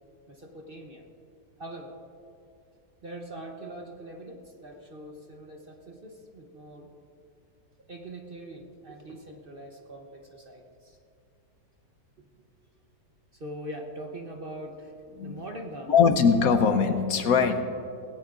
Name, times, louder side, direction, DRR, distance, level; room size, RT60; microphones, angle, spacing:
voice 1, 0.3-1.1 1.6-2.0 3.0-7.0 7.9-11.0 12.2-12.3 13.3-14.9 15.2-16.1, right 1 dB, 40° right, 2 dB, 0.9 m, -42 dB
voice 2, 15.9-17.6, left 6 dB, 65° left, 8 dB, 1.1 m, -21 dB
18.0 x 17.0 x 2.5 m, 2.5 s
omnidirectional pair, 1.7 m